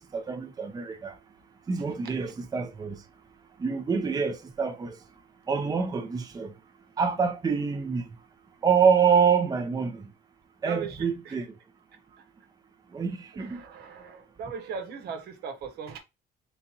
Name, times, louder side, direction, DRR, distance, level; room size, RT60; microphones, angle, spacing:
voice 1, 0.1-1.1 1.7-3.0 3.6-5.0 5.5-6.5 7.0-8.0 8.6-10.0 10.6-11.5 12.9-13.6, right 6 dB, 20° right, 0.7 m, -26 dB
voice 2, 10.6-11.4 13.3-16.0, right 6 dB, 75° right, 1.1 m, -39 dB
4.0 x 3.6 x 2.8 m
cardioid pair, 110°, 17 cm